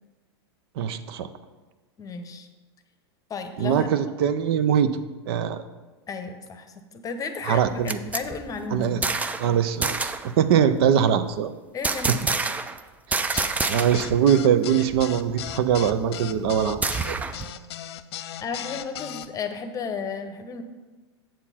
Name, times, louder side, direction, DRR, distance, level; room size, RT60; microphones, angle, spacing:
voice 1, 0.8-1.3 3.6-5.0 5.3-5.6 7.4-8.0 8.7-9.0 9.4-11.5 13.7-17.2, right 8 dB, 60° right, 11 dB, 0.6 m, -22 dB
voice 2, 2.0-2.5 3.3-4.0 6.1-9.1 11.7-12.2 18.4-20.6, left 5 dB, 25° left, 8 dB, 0.9 m, -33 dB
sound 1, 7.6-9.5 9.8-10.3 11.8-12.8 13.1-14.2 14.5-14.6 14.9-17.5, right 4 dB, 10° right, 0.4 m, -28 dB
sound 2, 13.3-19.3, left 11 dB, 65° left, 0.5 m, -37 dB
7.4 x 7.1 x 4.2 m, 1.2 s
hypercardioid pair, 105°, 14 cm